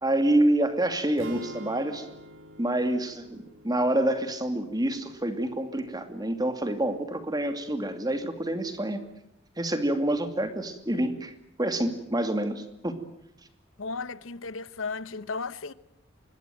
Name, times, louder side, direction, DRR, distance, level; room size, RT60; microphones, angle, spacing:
voice 1, 0.0-2.1 2.6-9.1 9.6-11.3 11.6-13.0, right 1 dB, 20° right, 2.5 m, -27 dB
sound 1, 1.2-5.3, right 1 dB, 75° right, 2.5 m, -46 dB
voice 2, 13.8-15.7, left 4 dB, 85° left, 0.9 m, -35 dB
25.0 x 21.5 x 9.1 m
head